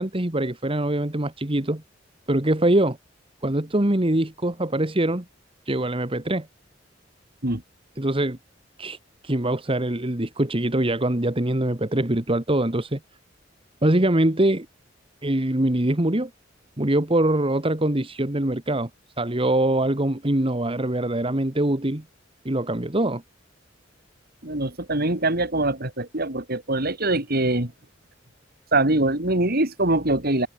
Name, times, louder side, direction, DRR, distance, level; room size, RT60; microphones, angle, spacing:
voice 1, 0.0-1.8 2.3-3.0 3.4-5.3 5.7-6.5 8.0-8.4 8.8-9.0 9.2-13.0 13.8-14.7 15.2-16.3 16.8-18.9 19.2-22.0 22.5-23.2, right 1 dB, 30° right, 1.8 m, -23 dB
voice 2, 24.4-27.7 28.7-30.5, right 2 dB, 55° right, 4.6 m, -23 dB
head